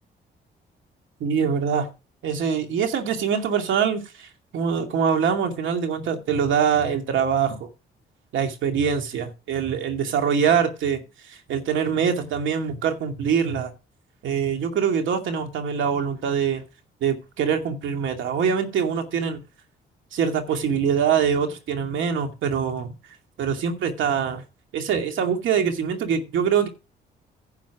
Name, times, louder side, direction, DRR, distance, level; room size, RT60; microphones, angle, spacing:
voice 1, 1.2-1.9 2.2-7.7 8.3-13.7 14.2-16.6 17.0-19.4 20.1-22.9 23.4-24.4 24.7-26.7, right 7 dB, 75° right, 2.4 m, -24 dB
11.0 x 6.8 x 4.8 m
cardioid pair, 90°, 20 cm